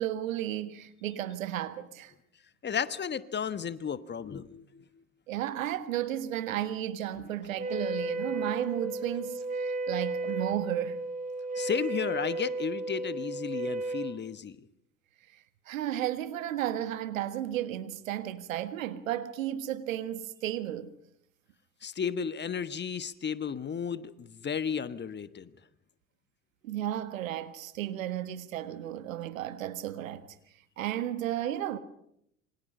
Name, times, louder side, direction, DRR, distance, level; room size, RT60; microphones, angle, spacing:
voice 1, 0.0-2.1 5.3-11.0 15.7-20.9 26.6-30.3 30.8-31.8, right 12 dB, 75° right, 1.6 m, -33 dB
voice 2, 2.6-4.8 11.5-14.6 21.8-25.5, left 7 dB, 25° left, 1.2 m, -33 dB
Wind instrument woodwind instrument, 7.6-14.2, right 2 dB, 20° right, 2.2 m, -34 dB
27.0 x 24.5 x 5.6 m
hypercardioid pair, 70°, 40 cm